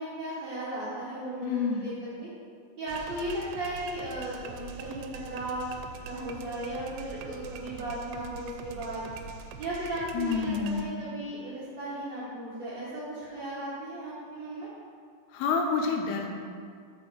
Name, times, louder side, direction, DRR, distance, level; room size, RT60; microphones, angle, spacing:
voice 1, 0.0-2.3 2.8-5.7 6.0-9.1 9.6-14.7, right 1 dB, 70° right, -9 dB, 1.6 m, -36 dB
voice 2, 1.4-1.9 10.1-11.0 15.3-16.3, left 5 dB, 80° left, 2 dB, 2.5 m, -28 dB
sound 1, 2.9-10.9, right 6 dB, 85° right, 2.8 m, -44 dB
6.0 x 5.7 x 6.4 m, 2.2 s
omnidirectional pair, 4.9 m